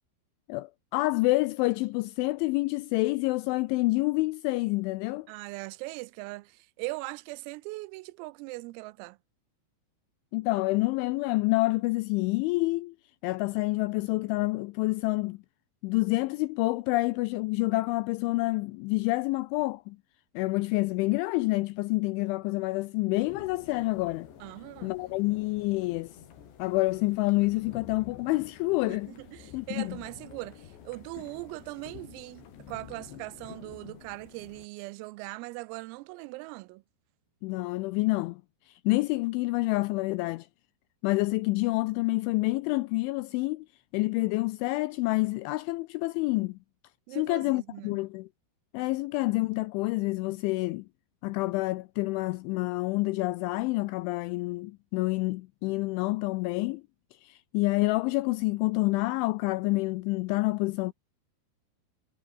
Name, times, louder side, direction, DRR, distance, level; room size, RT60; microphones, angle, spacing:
voice 1, 0.5-5.3 10.3-13.0 13.2-15.4 15.8-20.0 20.4-24.3 24.8-26.1 26.6-29.1 29.5-30.0 37.4-38.4 38.7-40.5 41.0-43.7 43.9-46.6 47.1-48.3 48.7-50.9 51.2-56.8 57.2-60.9, left 22 dB, 85° left, 2.7 m, -28 dB
voice 2, 5.3-9.2 24.4-24.9 28.8-36.8 47.1-48.0, right 23 dB, 85° right, 3.3 m, -40 dB
sound 1, 23.2-34.7, left 8 dB, 60° left, 5.4 m, -49 dB
omnidirectional pair, 6.0 m